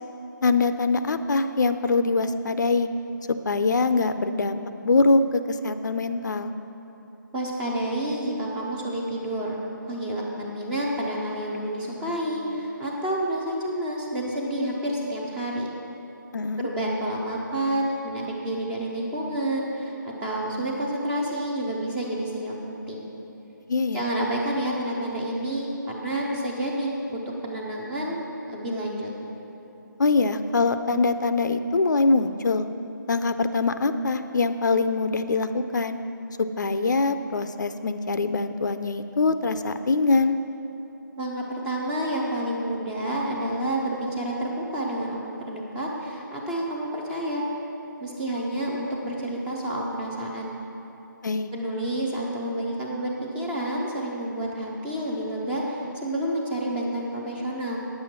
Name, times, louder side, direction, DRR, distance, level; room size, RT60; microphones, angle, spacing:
voice 1, 0.4-2.9 3.3-6.5 16.3-16.7 23.7-24.0 30.0-32.7 33.1-36.0 36.6-40.4 51.2-51.5, left 3 dB, 60° left, 10 dB, 0.5 m, -23 dB
voice 2, 7.3-9.6 9.9-15.7 16.6-23.1 23.9-29.1 41.2-47.4 48.0-50.5 51.5-57.8, right 1 dB, 5° right, -3 dB, 0.5 m, -29 dB
9.4 x 7.6 x 5.8 m, 2.9 s
figure-of-eight pair, 165°, 11 cm